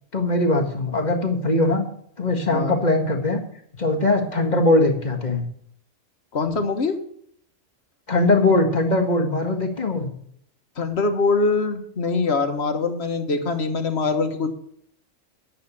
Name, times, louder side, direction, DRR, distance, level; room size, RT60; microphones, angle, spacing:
voice 1, 0.1-1.8 2.2-3.4 3.8-5.4 8.1-10.1, left 2 dB, 35° left, 2 dB, 1.8 m, -21 dB
voice 2, 6.3-6.9 10.8-14.5, left 4 dB, 60° left, 7 dB, 1.5 m, -23 dB
10.0 x 7.0 x 8.5 m, 0.66 s
omnidirectional pair, 1.3 m